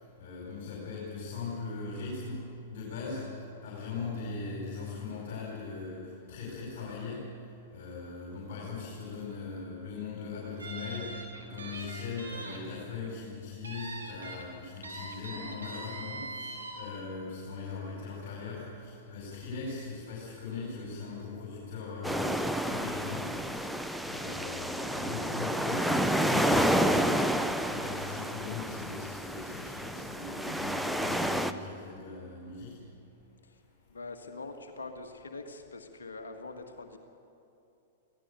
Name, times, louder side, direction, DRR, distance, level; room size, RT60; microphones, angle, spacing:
voice 1, 0.2-7.4 7.7-23.8 24.0-32.8, left 4 dB, 50° left, -3 dB, 4.9 m, -40 dB
sound 1, 10.6-12.6 12.9-13.1 13.6-14.4 14.8-16.8, right 2 dB, 85° right, 4.1 m, -42 dB
sound 2, 22.0-31.5, equal, ahead, 0.8 m, -30 dB
voice 2, 33.9-37.0, left 3 dB, 70° left, 5 dB, 1.7 m, -43 dB
24.5 x 17.0 x 6.9 m, 2.9 s
figure-of-eight pair, 100°, 0 cm